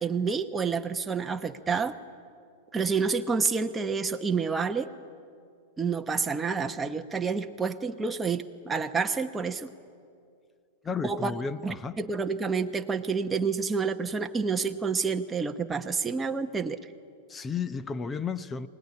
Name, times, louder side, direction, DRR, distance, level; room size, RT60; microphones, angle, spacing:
voice 1, 0.0-2.0 2.7-4.9 5.8-9.7 11.0-11.3 11.6-16.8, right 5 dB, 10° right, 5 dB, 1.0 m, -29 dB
voice 2, 10.8-12.0 17.3-18.7, left 5 dB, 15° left, 15 dB, 0.7 m, -33 dB
23.5 x 19.0 x 9.8 m, 2.4 s
supercardioid pair, 145°, 0 cm